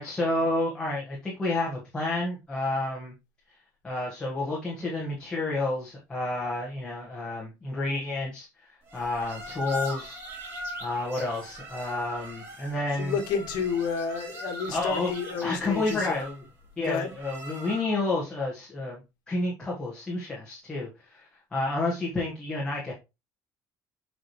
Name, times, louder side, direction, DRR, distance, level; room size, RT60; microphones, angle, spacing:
voice 1, 0.0-3.1 3.8-10.2 10.8-13.1 14.7-15.1 15.4-16.4 16.8-19.0 19.3-22.9, left 2 dB, 10° left, 1.7 m, -30 dB
sound 1, 8.9-18.1, equal, 30° right, 2.7 m, -41 dB
voice 2, 12.9-16.1 16.8-17.1, left 6 dB, 70° left, 1.7 m, -30 dB
7.5 x 4.8 x 3.2 m
cardioid pair, 175°, 8 cm